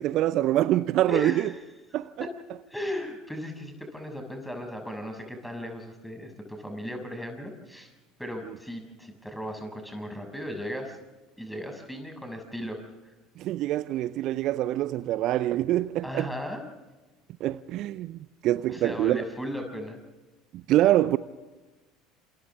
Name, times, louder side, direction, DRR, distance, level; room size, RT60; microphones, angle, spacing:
voice 1, 0.0-1.5 1.9-2.3 8.5-8.6 13.4-16.3 17.4-19.2 20.5-21.2, right 14 dB, 50° right, 0.6 m, -25 dB
voice 2, 1.1-1.5 1.9-2.3 2.7-7.9 8.2-11.0 11.4-12.8 16.0-16.6 18.7-20.0, equal, ahead, 6.6 m, -36 dB
28.5 x 28.0 x 3.6 m
figure-of-eight pair, 65°, 0 cm